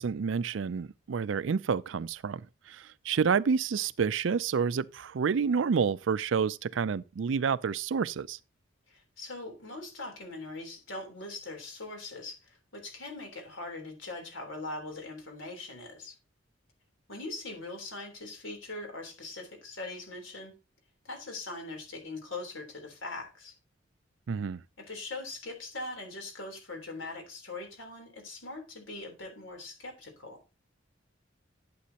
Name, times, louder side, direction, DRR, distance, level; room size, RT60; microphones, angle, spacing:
voice 1, 0.0-8.4 24.3-24.6, right 6 dB, 70° right, 0.4 m, -29 dB
voice 2, 8.9-16.2 17.1-20.5 21.0-23.6 24.9-30.4, left 2 dB, 80° left, 3.6 m, -41 dB
11.5 x 8.5 x 2.9 m
head